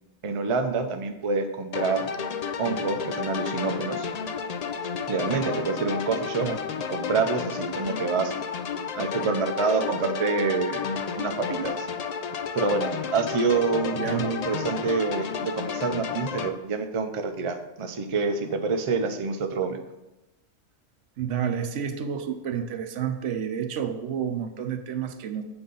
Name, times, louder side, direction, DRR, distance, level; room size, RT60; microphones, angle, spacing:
voice 1, 0.2-2.1 2.6-4.1 5.1-6.5 6.9-8.3 8.9-10.9 11.2-11.9 12.5-19.8, right 4 dB, 40° right, 6 dB, 0.5 m, -27 dB
sound 1, 1.7-16.5, left 6 dB, 65° left, 0.4 m, -31 dB
voice 2, 13.9-14.3 21.2-25.4, right 8 dB, 85° right, 8 dB, 1.0 m, -30 dB
7.8 x 5.6 x 3.9 m, 0.96 s
omnidirectional pair, 1.2 m